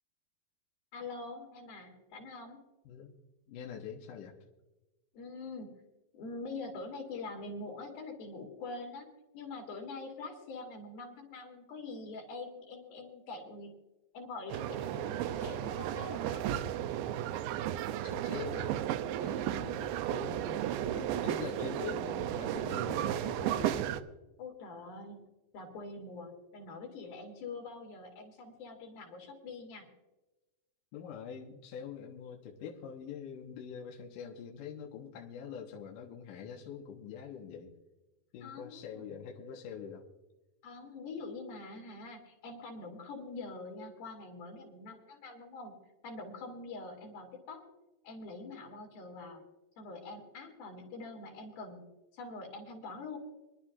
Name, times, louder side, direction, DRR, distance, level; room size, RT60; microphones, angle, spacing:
voice 1, 0.9-2.6 5.1-5.7 6.1-9.1 9.3-13.7 14.1-16.5 19.2-19.5 24.4-25.2 25.5-29.9 38.4-39.2 40.6-45.8 46.0-47.7 48.0-49.4 49.8-51.8 52.1-53.2, left 3 dB, 90° left, 1 dB, 4.4 m, -44 dB
voice 2, 3.5-4.3 18.0-18.7 19.3-20.7 20.9-23.9 30.9-37.7 38.3-40.1, left 7 dB, 70° left, 0 dB, 2.8 m, -44 dB
sound 1, 14.5-24.0, right 11 dB, 85° right, 2.4 m, -34 dB
25.0 x 11.5 x 2.5 m, 1.1 s
omnidirectional pair, 4.1 m